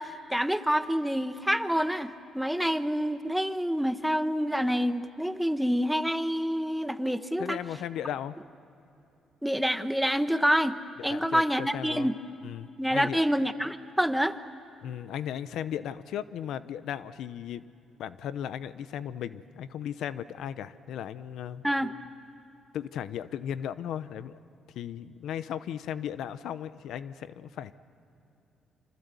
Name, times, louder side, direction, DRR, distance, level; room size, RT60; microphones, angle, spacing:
voice 1, 0.0-7.6 9.4-10.8 11.0-12.2 12.8-14.4 21.6-21.9, equal, 5° right, 10 dB, 1.1 m, -27 dB
voice 2, 7.4-8.4 11.0-12.1 12.4-13.2 14.8-17.6 18.0-21.6 22.7-24.4 24.7-27.7, left 9 dB, 80° left, 14 dB, 0.7 m, -36 dB
26.0 x 25.5 x 8.3 m, 2.8 s
cardioid pair, 90°, 0 cm